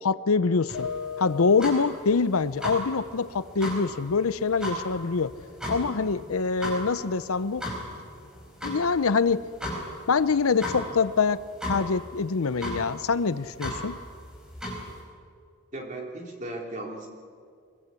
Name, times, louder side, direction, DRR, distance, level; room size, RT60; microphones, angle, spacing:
voice 1, 0.0-5.3 5.7-7.6 8.6-9.4 10.1-14.0, left 4 dB, 80° left, 15 dB, 0.7 m, -25 dB
sound 1, 0.7-15.0, equal, 5° right, 5.0 m, -37 dB
voice 2, 15.7-17.1, right 2 dB, 35° right, 0 dB, 3.5 m, -36 dB
23.5 x 21.5 x 8.4 m, 2.2 s
head